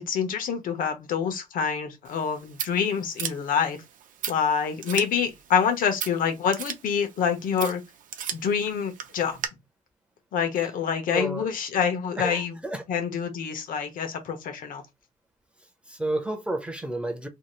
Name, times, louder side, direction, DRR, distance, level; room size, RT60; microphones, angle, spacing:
voice 1, 0.0-3.8 4.3-7.8 8.3-9.4 10.3-12.6 12.9-14.8, left 7 dB, 80° left, 0.8 m, -26 dB
Scissors, 2.0-9.5, right 8 dB, 70° right, 0.5 m, -38 dB
voice 2, 11.1-11.5 12.2-12.8 15.9-17.3, right 2 dB, 10° right, 0.5 m, -31 dB
2.7 x 2.3 x 3.0 m
wide cardioid pair, 180°, 14 cm